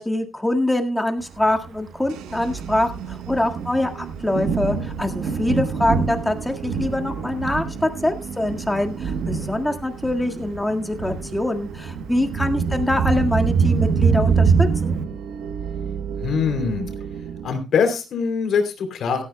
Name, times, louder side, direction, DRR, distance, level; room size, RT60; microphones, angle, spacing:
voice 1, 0.0-15.0, left 1 dB, 10° left, 4 dB, 1.7 m, -24 dB
Thunder, 1.4-15.0, right 5 dB, 70° right, 1.0 m, -24 dB
sound 1, 2.1-17.6, right 7 dB, 90° right, 1.0 m, -35 dB
voice 2, 16.2-16.9 17.4-19.2, left 6 dB, 65° left, 6 dB, 3.0 m, -22 dB
17.0 x 13.0 x 2.2 m, 0.28 s
cardioid pair, 90°, 0 cm